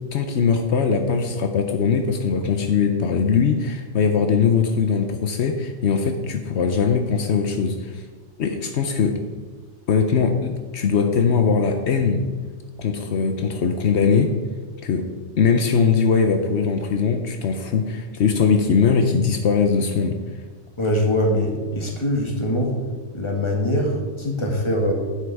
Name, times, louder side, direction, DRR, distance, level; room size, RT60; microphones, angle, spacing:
voice 1, 0.1-8.0 8.4-9.2 9.9-12.2 12.8-14.3 14.8-15.1 15.4-20.2, left 5 dB, 75° left, 6 dB, 1.0 m, -20 dB
voice 2, 20.8-22.7 23.1-24.9, left 1 dB, 25° left, 0 dB, 1.8 m, -22 dB
9.7 x 7.9 x 4.6 m, 1.5 s
omnidirectional pair, 1.1 m